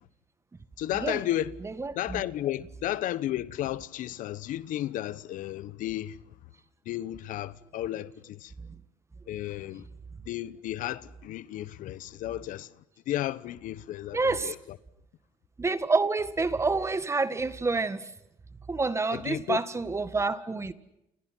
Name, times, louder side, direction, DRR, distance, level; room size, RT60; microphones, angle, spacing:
voice 1, 0.8-1.5 1.9-6.2 6.8-8.5 9.3-9.9 10.2-12.7 13.1-14.8 19.1-19.6, left 13 dB, 65° left, 1.1 m, -33 dB
voice 2, 1.6-2.2 14.1-14.6 15.6-18.1 18.7-20.7, right 3 dB, 20° right, 1.8 m, -28 dB
29.5 x 29.5 x 6.2 m
cardioid pair, 105°, 14 cm